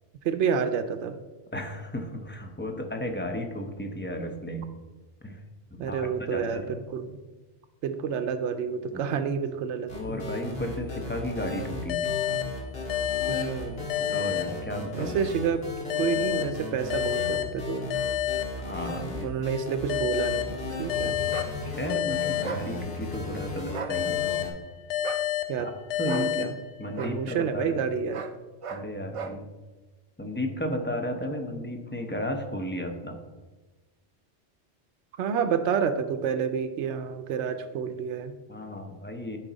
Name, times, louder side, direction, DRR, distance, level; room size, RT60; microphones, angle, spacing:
voice 1, 0.2-1.2 5.8-6.6 6.9-7.2 7.8-10.2 13.3-13.9 14.9-15.6 16.0-18.0 19.2-21.2 25.5-25.7 26.1-26.5 27.0-28.3 35.2-38.3, right 6 dB, 90° right, 9 dB, 0.9 m, -29 dB
voice 2, 1.5-4.7 5.2-5.4 5.7-6.8 8.9-9.1 9.9-12.1 14.0-15.1 18.6-19.3 21.0-24.2 25.6-25.7 26.0-26.5 26.8-27.8 28.7-29.4 30.2-33.2 38.5-39.4, left 1 dB, 10° left, 4 dB, 0.6 m, -34 dB
sound 1, 9.9-24.5, left 2 dB, 60° left, 2.0 m, -36 dB
sound 2, 11.9-15.2 15.9-19.2 19.9-23.2 23.9-27.2, left 12 dB, 85° left, 0.9 m, -31 dB
sound 3, 21.3-21.5 22.4-22.7 23.7-24.0 25.0-25.3 26.1-26.3 27.0-27.2 28.1-28.4 28.6-28.9 29.1-29.4, right 5 dB, 60° right, 0.3 m, -36 dB
9.8 x 4.5 x 4.0 m, 1.2 s
omnidirectional pair, 1.2 m